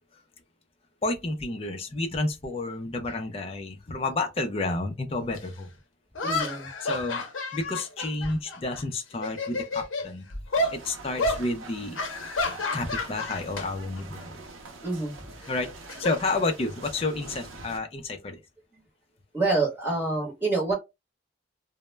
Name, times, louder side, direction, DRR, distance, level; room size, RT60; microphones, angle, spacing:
voice 1, 1.0-5.7 6.8-7.2 7.5-10.3 10.7-12.0 12.7-14.4 15.5-15.7 16.0-18.4, left 2 dB, 30° left, 0.4 m, -30 dB
sound 1, 5.3-5.4 6.1-8.8 9.1-10.1 10.5-10.8 11.2-11.4 11.9-13.7 14.0-14.2 15.4-16.9, left 2 dB, 80° left, 0.6 m, -30 dB
voice 2, 6.2-6.7 14.8-15.2 19.3-20.7, right 3 dB, 10° right, 0.9 m, -27 dB
sound 2, 10.6-17.8, right 3 dB, 90° right, 0.6 m, -45 dB
2.1 x 2.0 x 3.1 m
head